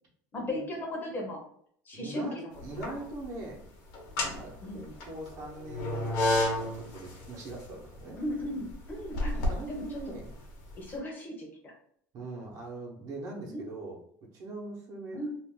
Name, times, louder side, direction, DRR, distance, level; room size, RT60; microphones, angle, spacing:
voice 1, 0.3-1.4 1.9-2.5 2.9-3.0 4.6-4.9 8.2-9.4 9.7-10.0 10.8-11.7 13.5-13.6 15.1-15.3, left 1 dB, 25° left, 0 dB, 0.7 m, -36 dB
voice 2, 1.9-3.6 4.1-6.2 6.6-8.2 9.3-10.4 12.1-14.0 14.3-15.2, right 2 dB, 45° right, -2 dB, 0.9 m, -42 dB
sound 1, 2.6-3.3 3.9-10.8, left 2 dB, 60° left, 0.8 m, -32 dB
2.5 x 2.4 x 3.6 m, 0.64 s
cardioid pair, 155°, 8 cm